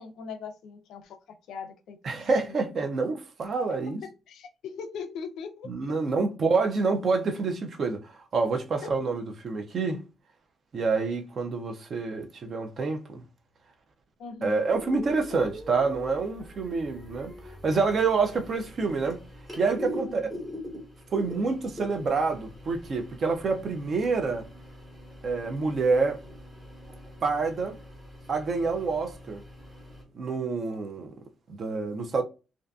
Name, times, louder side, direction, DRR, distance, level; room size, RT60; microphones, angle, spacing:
voice 1, 0.0-2.5 4.0-6.2 8.8-8.9 14.2-14.6 20.0-20.3, left 5 dB, 70° left, 0.4 m, -41 dB
voice 2, 2.0-4.0 5.7-10.0 10.7-13.2 14.4-19.2 19.6-20.2 21.1-24.4 25.2-26.2 27.2-27.8 28.3-29.4 30.1-31.1 31.6-32.2, right 4 dB, 35° right, 0.4 m, -27 dB
sound 1, 14.7-30.0, left 1 dB, 15° right, 1.1 m, -43 dB
2.5 x 2.4 x 2.3 m
cardioid pair, 170°, 0 cm